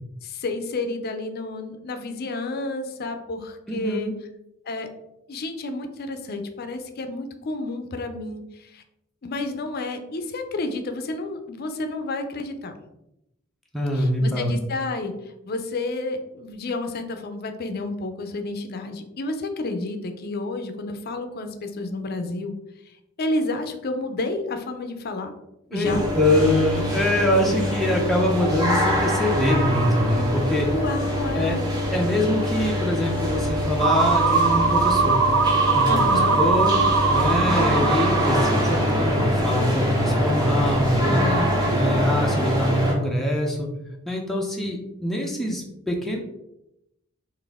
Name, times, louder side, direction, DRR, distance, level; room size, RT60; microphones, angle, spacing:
voice 1, 0.2-4.1 4.7-4.9 5.3-8.8 9.2-12.7 13.9-22.6 22.9-25.3 25.7-26.0 27.9-28.2 30.7-31.7 35.8-36.4 41.0-41.8, left 2 dB, 50° left, 7 dB, 0.5 m, -30 dB
voice 2, 3.7-4.1 13.7-14.5 25.7-30.7 31.3-31.6 31.9-35.2 35.8-36.7 37.1-41.2 41.7-43.7 44.1-46.2, left 1 dB, ahead, -2 dB, 0.5 m, -24 dB
sound 1, 25.8-42.9, equal, 20° right, 0.9 m, -24 dB
sound 2, 33.8-38.8, right 4 dB, 75° right, 0.5 m, -21 dB
4.1 x 2.5 x 3.5 m, 0.86 s
head